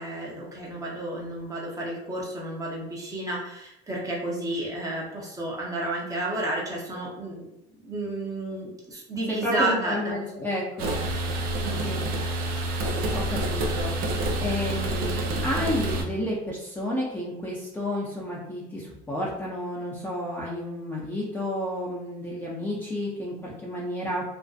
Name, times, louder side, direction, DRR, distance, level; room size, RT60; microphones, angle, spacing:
voice 1, 0.0-7.5 7.8-10.0 11.6-11.8, right 2 dB, 20° right, -3 dB, 0.8 m, -31 dB
voice 2, 9.3-10.9 11.8-12.0 13.1-13.9 14.4-24.2, left 1 dB, 10° left, -5 dB, 0.5 m, -31 dB
sound 1, 10.8-16.0, right 1 dB, 60° right, 0.5 m, -28 dB
2.6 x 2.1 x 2.4 m, 0.86 s
supercardioid pair, 105°, 18 cm